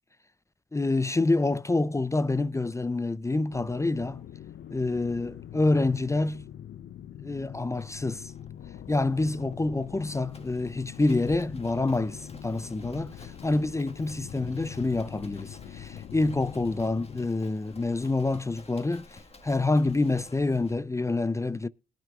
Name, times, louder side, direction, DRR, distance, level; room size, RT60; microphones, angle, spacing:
voice 1, 0.7-4.2 4.7-6.4 7.2-8.3 8.9-19.1 19.4-21.7, left 2 dB, 15° left, 0.5 m, -27 dB
sound 1, 3.5-17.3, left 10 dB, 60° left, 0.6 m, -43 dB
Livestock farm animals working animals, 7.8-20.8, left 2 dB, 30° left, 1.7 m, -52 dB
21.0 x 8.9 x 2.4 m
hypercardioid pair, 50°, 20 cm